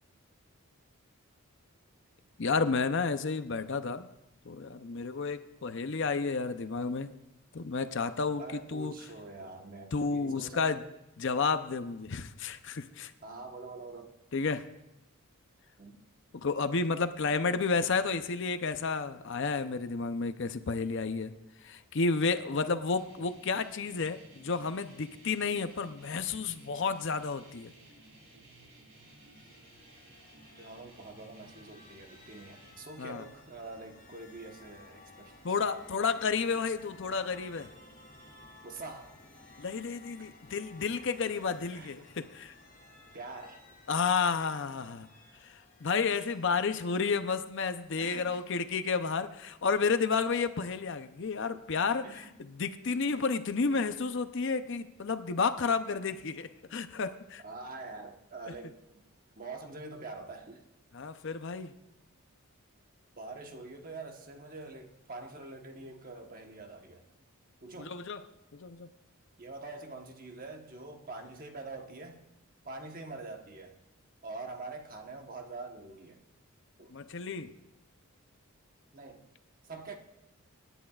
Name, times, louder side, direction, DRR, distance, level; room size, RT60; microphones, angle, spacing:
voice 1, 2.4-4.1 4.5-7.1 7.5-9.0 9.9-10.8 11.2-13.1 14.3-14.6 16.3-21.3 21.6-27.7 33.0-33.2 35.4-37.7 39.6-42.5 43.9-45.1 45.8-57.4 60.9-61.7 67.8-68.2 68.5-68.9 76.9-77.5, left 4 dB, 55° left, 10 dB, 0.6 m, -31 dB
voice 2, 8.4-10.8 13.2-14.1 15.8-16.0 22.4-22.8 30.6-35.3 38.6-39.1 41.7-41.9 43.1-43.6 48.0-48.4 52.0-52.4 57.4-59.0 59.4-60.6 63.2-67.0 67.6-68.0 69.4-72.2 72.6-73.8 74.2-76.2 76.8-77.0 78.9-79.2 79.7-80.0, right 3 dB, 40° right, 4 dB, 1.1 m, -45 dB
sound 1, 22.9-32.7, right 2 dB, 60° right, 3.8 m, -57 dB
sound 2, 28.8-47.0, left 2 dB, 40° left, 3.0 m, -56 dB
25.5 x 10.0 x 2.4 m, 0.92 s
head